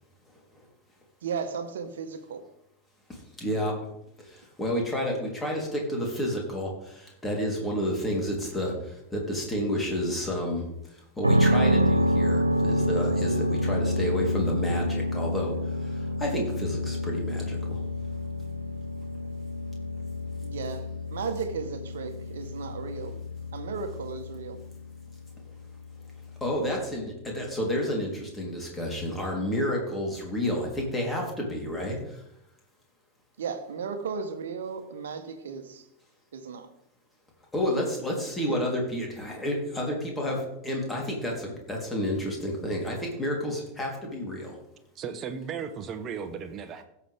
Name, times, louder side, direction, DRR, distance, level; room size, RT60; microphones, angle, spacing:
voice 1, 1.2-2.5 20.4-23.2 23.5-24.6 33.4-35.8 36.3-36.7 38.4-38.6, right 5 dB, 65° right, 1.2 m, -35 dB
voice 2, 3.1-3.7 4.2-10.7 11.2-15.5 15.8-17.8 26.4-32.2 37.5-44.5, equal, 15° left, 3.6 m, -30 dB
sound 1, 11.2-27.1, equal, 90° right, 0.5 m, -28 dB
voice 3, 44.9-46.8, right 6 dB, 30° right, 1.1 m, -35 dB
16.5 x 7.1 x 3.6 m
figure-of-eight pair, 90°, 0 cm